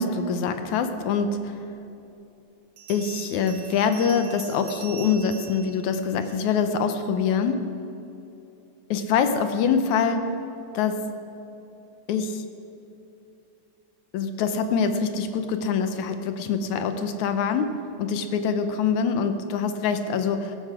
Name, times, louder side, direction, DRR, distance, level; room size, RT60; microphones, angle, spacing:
voice 1, 0.0-1.6 2.9-7.7 8.9-10.3 10.7-11.0 12.1-12.4 14.1-20.6, left 6 dB, 75° left, 8 dB, 2.2 m, -24 dB
Bell, 1.6-1.7 2.8-6.7, right 9 dB, 70° right, 2.3 m, -43 dB
17.5 x 12.5 x 5.0 m, 2.9 s
omnidirectional pair, 3.4 m